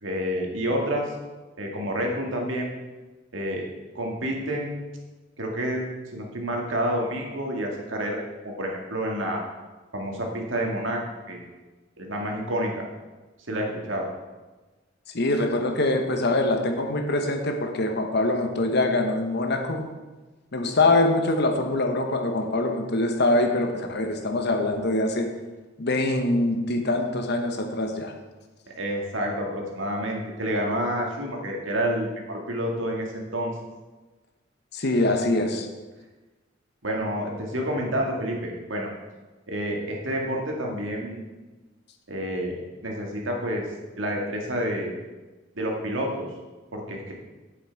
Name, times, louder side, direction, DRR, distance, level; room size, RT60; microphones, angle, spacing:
voice 1, 0.0-1.1 1.6-2.7 3.3-3.6 3.9-4.8 5.4-5.8 6.1-8.2 8.4-9.4 9.9-11.0 11.3-11.5 12.0-12.9 13.5-14.1 28.8-33.5 36.8-38.9 39.5-41.3 42.1-43.6 44.0-44.9 45.6-46.3 46.7-47.1, equal, 80° right, 0 dB, 2.0 m, -29 dB
voice 2, 15.1-19.9 20.5-25.3 25.8-28.1 34.7-35.7, left 2 dB, 60° left, 5 dB, 1.1 m, -24 dB
8.8 x 8.6 x 4.6 m, 1.2 s
head